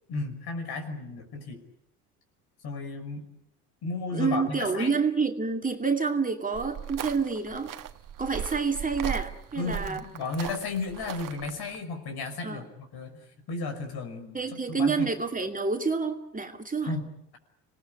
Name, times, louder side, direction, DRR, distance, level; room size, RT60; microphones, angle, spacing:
voice 1, 0.1-1.6 2.6-3.3 3.8-5.0 9.6-12.6 12.9-14.4 14.7-15.1 16.8-17.1, left 3 dB, 55° left, 7 dB, 5.9 m, -34 dB
voice 2, 4.1-7.7 8.2-10.0 12.4-12.6 14.3-16.9, right 4 dB, 15° right, 4 dB, 2.5 m, -28 dB
sound 1, 6.5-11.8, right 10 dB, 45° right, 1.6 m, -38 dB
26.5 x 19.0 x 9.6 m, 0.76 s
hypercardioid pair, 70°, 45 cm